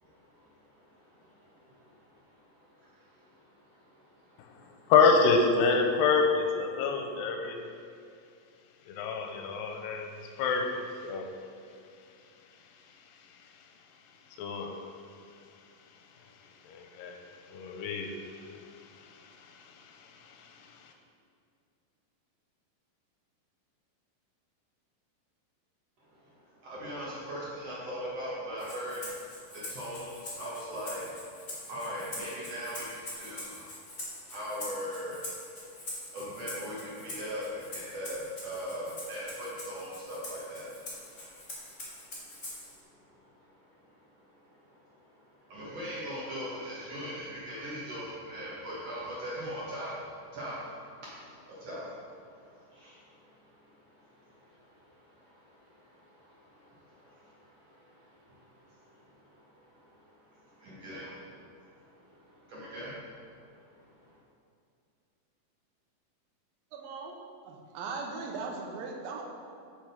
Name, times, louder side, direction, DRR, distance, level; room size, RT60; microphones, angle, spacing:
voice 1, 0.0-4.9 6.7-7.2 26.0-64.2, equal, 60° right, -7 dB, 1.9 m, -42 dB
voice 2, 4.9-7.6 8.9-10.7 11.0-11.3 14.4-14.7 16.7-17.2 17.5-18.1, left 4 dB, 80° left, 3 dB, 2.3 m, -26 dB
Rattle (instrument), 28.6-42.8, left 1 dB, 30° left, 1.4 m, -44 dB
voice 3, 66.7-67.2 67.4-69.2, right 4 dB, 80° right, 0 dB, 2.6 m, -38 dB
6.5 x 6.1 x 5.1 m, 2.4 s
omnidirectional pair, 4.2 m